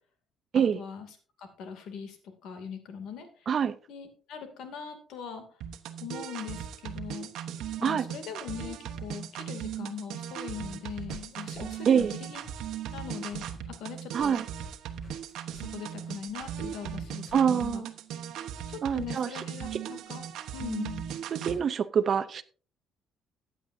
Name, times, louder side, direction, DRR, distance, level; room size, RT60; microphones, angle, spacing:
voice 1, 0.7-1.1 1.4-3.5 3.9-5.4 6.0-7.3 7.8-12.4 12.9-14.5 15.5-17.9 18.7-21.1, left 7 dB, 70° left, 7 dB, 2.5 m, -41 dB
voice 2, 3.5-3.8 7.8-8.0 11.9-12.2 14.1-14.5 17.3-17.9 18.8-19.3 19.7-19.8 21.3-22.4, right 7 dB, 45° right, 13 dB, 0.6 m, -25 dB
sound 1, 5.6-21.6, right 9 dB, 75° right, 1.1 m, -38 dB
sound 2, 10.9-17.7, right 1 dB, 25° left, 5.8 m, -51 dB
15.0 x 9.2 x 2.7 m, 0.39 s
cardioid pair, 125°, 0 cm